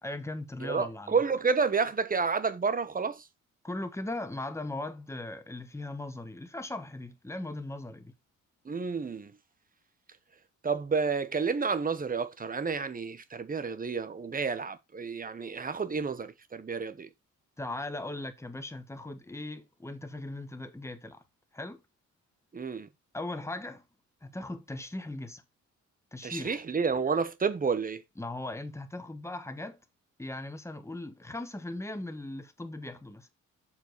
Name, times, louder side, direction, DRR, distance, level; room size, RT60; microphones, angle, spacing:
voice 1, 0.0-1.2 3.6-8.1 17.6-21.2 21.5-21.8 23.1-23.8 24.2-25.4 26.1-26.6 28.2-29.8 30.2-33.3, left 2 dB, 10° left, 1.3 m, -38 dB
voice 2, 0.6-3.2 8.6-9.3 10.6-17.1 22.5-22.9 26.2-28.0, right 5 dB, 30° right, 1.1 m, -30 dB
7.2 x 4.5 x 4.6 m
cardioid pair, 100°, 30 cm